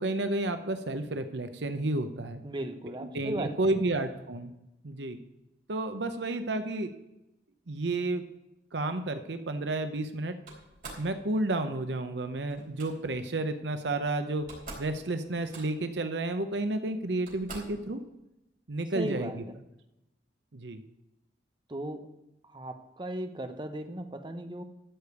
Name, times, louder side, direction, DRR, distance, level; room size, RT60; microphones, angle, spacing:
voice 1, 0.0-2.4 3.0-4.5 4.8-5.2 5.7-6.9 7.7-8.2 8.7-10.3 11.0-14.5 14.8-18.0 18.7-19.4 20.5-20.8, right 2 dB, 80° right, 8 dB, 0.8 m, -31 dB
voice 2, 2.4-3.5 18.9-19.6 21.7-22.1 22.5-24.6, right 1 dB, 25° right, 8 dB, 0.9 m, -36 dB
Slam, 10.5-11.1 12.5-12.9 14.0-14.1 14.3-14.9 15.2-15.9 16.7-16.8 17.3-17.8, right 2 dB, 50° right, 3.9 m, -45 dB
13.5 x 5.2 x 8.0 m, 0.90 s
head